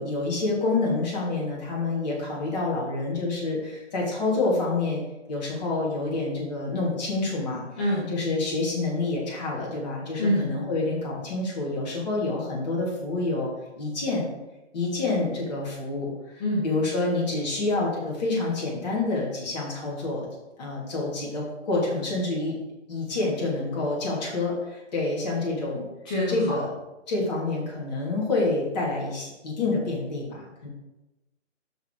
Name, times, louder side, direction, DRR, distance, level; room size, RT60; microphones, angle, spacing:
voice 1, 0.0-7.6 8.1-13.5 13.8-14.2 14.7-20.3 20.6-22.6 22.9-25.8 26.3-26.7 27.1-30.7, left 2 dB, 35° left, -3 dB, 3.2 m, -28 dB
voice 2, 7.8-8.1 10.2-10.5 16.4-16.7 26.1-26.6, left 1 dB, 5° left, -5 dB, 0.6 m, -25 dB
12.5 x 4.3 x 5.0 m, 1.0 s
figure-of-eight pair, 135°, 36 cm